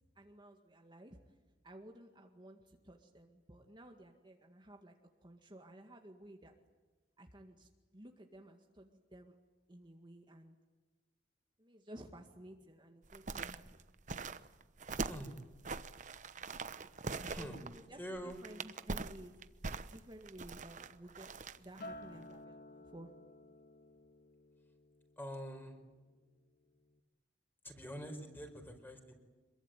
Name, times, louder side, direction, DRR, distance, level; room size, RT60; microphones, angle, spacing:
voice 1, 0.2-1.4 1.6-4.9 5.2-6.5 7.2-9.3 9.7-10.6 11.6-13.8 17.3-19.4 19.9-23.1, right 1 dB, 25° right, 3 dB, 2.0 m, -55 dB
sound 1, 13.0-21.9 22.2-22.3, right 4 dB, 45° right, 1.0 m, -43 dB
voice 2, 14.9-15.3 17.2-17.6 18.0-18.4 25.2-25.8 27.6-29.1, equal, 10° left, 5 dB, 5.0 m, -45 dB
Acoustic guitar, 21.8-26.2 26.6-27.0, left 1 dB, 60° left, 1.8 m, -54 dB
26.5 x 23.0 x 9.3 m, 1.2 s
head